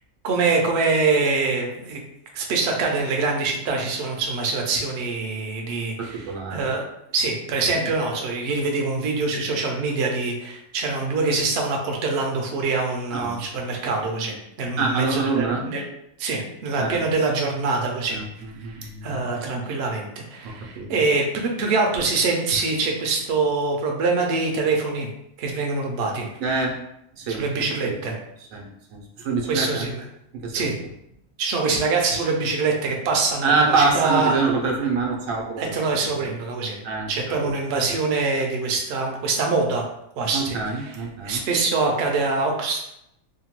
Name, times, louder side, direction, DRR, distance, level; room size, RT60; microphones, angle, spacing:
voice 1, 0.2-2.0 2.3-6.3 6.5-6.8 7.1-15.8 16.2-18.2 18.6-25.1 25.4-26.3 27.4-28.1 29.5-30.0 30.5-30.7 31.4-34.3 35.6-36.8 37.1-39.8 40.2-40.9 41.2-42.8, right 3 dB, 65° right, 1 dB, 0.7 m, -24 dB
voice 2, 6.0-6.7 13.1-13.4 14.8-15.7 16.8-17.0 18.1-19.2 20.4-20.9 26.4-26.8 27.2-27.4 27.8-27.9 28.5-29.9 30.3-30.7 33.4-35.7 36.0-36.3 36.8-37.1 37.4-37.5 40.3-41.4, right 4 dB, 80° right, 0 dB, 1.0 m, -25 dB
2.8 x 2.2 x 2.9 m, 0.79 s
omnidirectional pair, 1.4 m